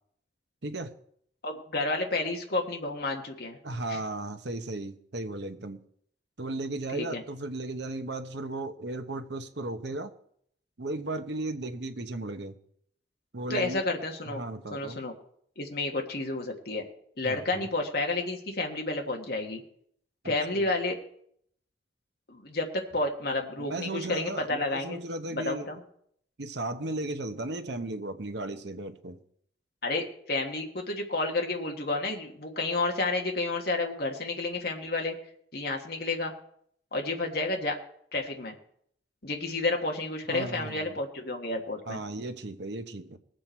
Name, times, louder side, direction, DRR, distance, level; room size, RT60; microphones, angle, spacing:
voice 1, 0.6-0.9 3.6-5.8 6.4-10.1 10.8-12.6 13.3-13.8 14.3-15.0 17.2-17.7 20.2-20.7 23.6-25.7 26.4-29.2 40.3-41.0 41.9-43.2, right 2 dB, 65° right, 1.0 m, -35 dB
voice 2, 1.4-3.6 3.9-4.0 6.9-7.2 13.5-14.4 14.7-15.1 15.6-16.8 17.2-19.6 20.2-21.0 22.3-25.0 25.3-25.8 29.8-35.1 35.5-36.3 36.9-37.8 38.1-38.6 39.2-42.0, left 2 dB, 55° left, 1.5 m, -30 dB
19.5 x 7.7 x 4.4 m
head